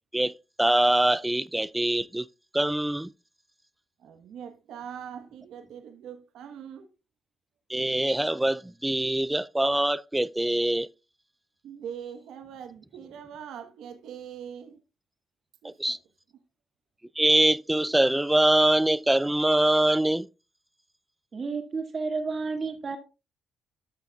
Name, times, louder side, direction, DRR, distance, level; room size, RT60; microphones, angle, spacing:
voice 1, 0.1-2.3 2.5-3.1 7.7-10.9 15.6-16.0 17.2-20.3, right 1 dB, 10° right, 0.3 m, -24 dB
voice 2, 4.0-6.9 11.6-14.8 15.6-16.0, right 8 dB, 80° right, 1.2 m, -42 dB
voice 3, 21.3-23.0, right 4 dB, 40° right, 1.9 m, -31 dB
12.5 x 6.5 x 2.3 m
cardioid pair, 90°, 0 cm